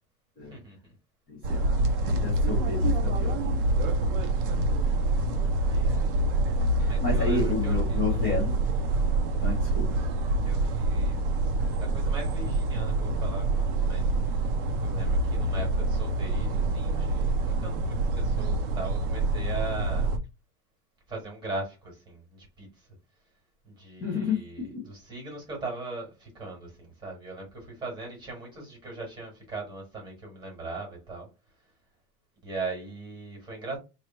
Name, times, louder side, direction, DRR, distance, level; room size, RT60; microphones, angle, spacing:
voice 1, 0.4-0.9 4.3-4.5 5.6-6.1 6.8-8.5 10.4-11.5 11.8-20.2 21.1-22.9 23.6-31.3 32.4-33.8, right 3 dB, 10° right, 1.3 m, -40 dB
voice 2, 1.3-3.6 6.8-8.6 9.4-9.9 24.0-24.8, left 4 dB, 15° left, 0.5 m, -31 dB
sound 1, 1.4-20.2, right 2 dB, 35° right, 0.4 m, -26 dB
3.1 x 2.6 x 4.2 m
supercardioid pair, 170°, 49 cm